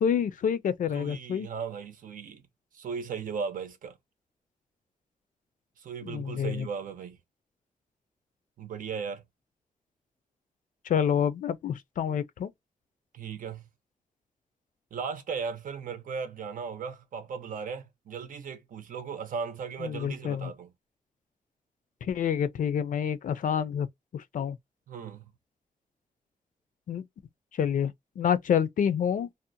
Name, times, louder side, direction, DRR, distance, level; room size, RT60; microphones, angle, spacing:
voice 1, 0.0-1.5 6.0-6.7 10.8-12.5 19.8-20.5 22.0-23.9 24.1-24.6 26.9-27.0 27.5-29.3, left 8 dB, 70° left, 0.4 m, -28 dB
voice 2, 0.9-2.4 2.7-3.9 5.8-7.2 8.6-9.2 13.1-13.6 14.9-20.7 24.9-25.3, right 6 dB, 75° right, 0.6 m, -37 dB
2.6 x 2.1 x 2.5 m
wide cardioid pair, 130°, 14 cm